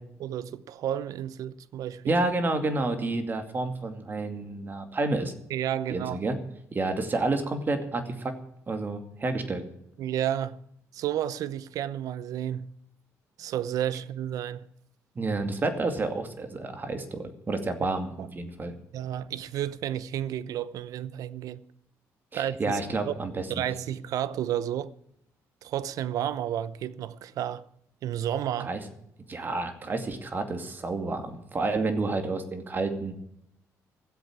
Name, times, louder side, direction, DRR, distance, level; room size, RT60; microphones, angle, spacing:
voice 1, 0.2-2.1 5.5-6.2 10.0-10.6 10.9-12.7 13.4-14.7 18.2-18.3 18.9-21.6 22.3-23.1 23.5-24.9 25.6-27.6 28.0-28.7, right 11 dB, 75° right, 0.7 m, -31 dB
voice 2, 2.1-5.3 5.9-6.4 6.7-8.3 8.7-9.6 15.2-18.7 22.3-23.6 28.6-28.8 29.3-33.1, right 3 dB, 35° right, 2.3 m, -30 dB
15.0 x 8.1 x 8.7 m
cardioid pair, 105°, 6 cm